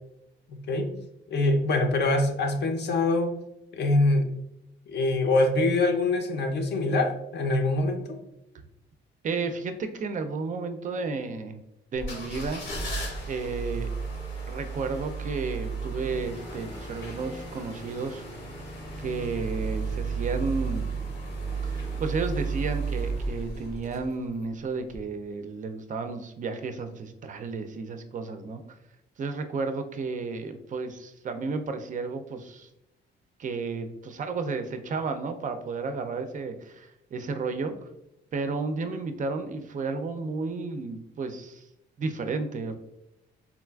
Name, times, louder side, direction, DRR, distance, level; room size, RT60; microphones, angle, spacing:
voice 1, 0.5-0.9 1.3-3.3 3.7-4.3 4.9-8.2, left 2 dB, 60° left, 5 dB, 0.6 m, -24 dB
voice 2, 9.2-11.6 11.9-12.6 13.3-13.9 14.5-18.2 19.0-20.9 21.6-28.6 29.2-32.7 33.4-37.7 38.3-41.6 42.0-42.7, right 4 dB, 40° right, 7 dB, 0.4 m, -32 dB
sound 1, 11.9-24.4 24.9-25.0, right 4 dB, 90° left, 1.1 m, -33 dB
3.8 x 2.3 x 2.2 m, 0.87 s
cardioid pair, 90°, 20 cm